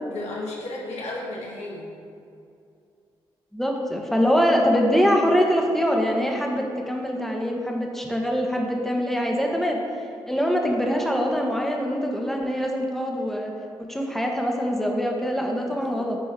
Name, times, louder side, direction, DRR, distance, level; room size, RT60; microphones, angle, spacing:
voice 1, 0.1-1.9 15.7-16.1, left 2 dB, 65° left, -4 dB, 1.9 m, -34 dB
voice 2, 3.5-13.5 13.8-16.2, equal, ahead, 0 dB, 1.4 m, -24 dB
8.2 x 4.3 x 5.1 m, 2.4 s
hypercardioid pair, 40°, 12 cm